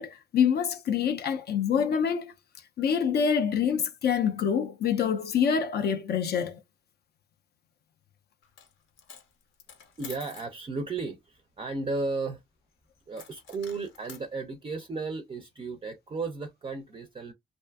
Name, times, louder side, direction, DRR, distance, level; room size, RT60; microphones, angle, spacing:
voice 1, 0.0-2.3 2.8-6.6, left 7 dB, 55° left, 0.4 m, -26 dB
Coin (dropping), 8.4-8.7 9.0-10.5 13.2-14.3, left 7 dB, 80° left, 0.8 m, -48 dB
voice 2, 10.0-12.4 13.1-17.3, right 3 dB, 25° right, 0.4 m, -34 dB
2.6 x 2.3 x 2.2 m
cardioid pair, 90°, 20 cm